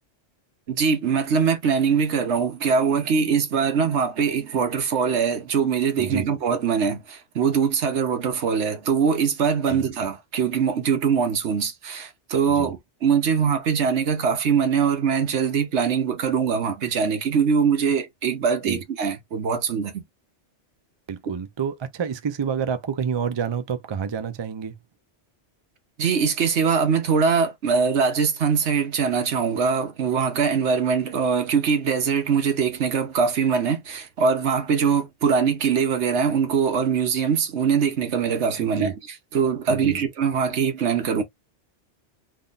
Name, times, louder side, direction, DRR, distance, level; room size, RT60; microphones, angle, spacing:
voice 1, 0.7-20.0 26.0-41.2, right 6 dB, 75° right, 1.2 m, -22 dB
voice 2, 21.1-24.8 38.6-38.9 39.7-40.0, right 6 dB, 50° right, 0.3 m, -28 dB
3.6 x 2.1 x 3.9 m
omnidirectional pair, 1.2 m